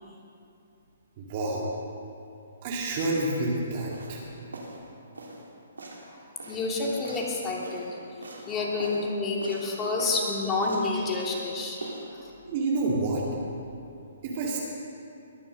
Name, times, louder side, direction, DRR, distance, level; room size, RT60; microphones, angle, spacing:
voice 1, 1.2-1.7 2.6-4.2 12.5-13.3 14.2-14.6, right 2 dB, 40° right, -3 dB, 2.4 m, -28 dB
sound 1, 3.9-4.2 4.5-4.8 5.1-5.4 5.8-6.1 6.4-7.9 8.2-8.5 8.8-9.1 9.4-9.7 10.0-10.3 10.6-11.5 11.8-12.1, right 2 dB, 85° right, 2.8 m, -42 dB
voice 2, 6.5-7.9 8.5-12.3, left 3 dB, 20° left, -3 dB, 2.7 m, -29 dB
21.0 x 7.2 x 6.5 m, 2.7 s
hypercardioid pair, 135°, 0 cm